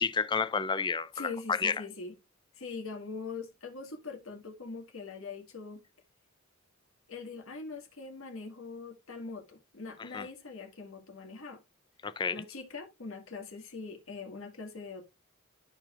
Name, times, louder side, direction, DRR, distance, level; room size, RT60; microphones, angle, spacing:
voice 1, 0.0-1.8 10.0-10.3 12.0-12.4, left 5 dB, 20° left, 0.4 m, -30 dB
voice 2, 1.1-2.2 2.5-5.8 7.1-11.6 12.3-15.0, left 4 dB, 70° left, 1.9 m, -42 dB
13.0 x 4.5 x 2.4 m
head